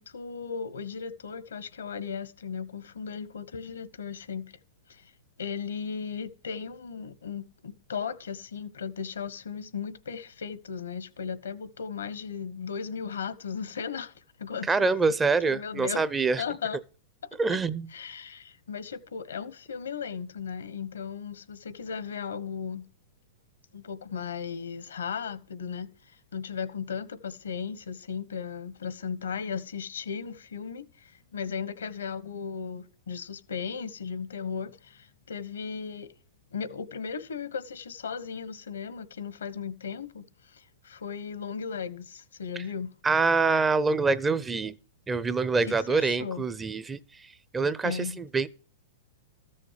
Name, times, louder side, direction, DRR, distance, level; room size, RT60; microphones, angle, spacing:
voice 1, 0.0-4.5 4.9-5.1 5.4-14.1 14.4-14.9 15.4-16.0 16.4-16.8 17.9-22.8 23.7-36.1 36.5-42.9 45.6-46.4 47.8-48.2, left 6 dB, 90° left, 1.3 m, -36 dB
voice 2, 14.7-16.4 17.4-17.9 43.0-44.7 45.1-47.0 47.5-48.5, right 4 dB, 15° right, 0.7 m, -25 dB
14.0 x 6.4 x 7.5 m
hypercardioid pair, 125°, 0 cm